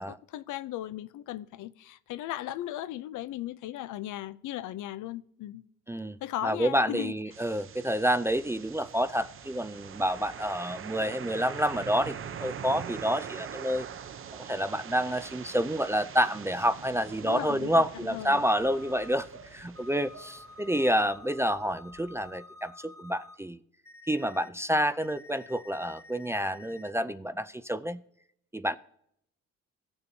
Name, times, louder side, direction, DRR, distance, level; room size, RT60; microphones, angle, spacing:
voice 1, 0.0-5.6 6.2-7.1 17.2-18.4, left 13 dB, 80° left, 0.5 m, -37 dB
voice 2, 6.4-13.9 14.3-23.6 24.1-28.0 28.5-28.8, equal, 10° right, 0.3 m, -29 dB
sound 1, 7.3-21.2, right 8 dB, 45° right, 0.6 m, -43 dB
sound 2, 16.7-22.3, right 4 dB, 80° right, 3.8 m, -55 dB
sound 3, 18.4-19.3 19.8-23.4 23.9-24.5 25.0-26.9, left 2 dB, 10° left, 1.1 m, -50 dB
15.5 x 7.0 x 2.7 m
cardioid pair, 90°, 30 cm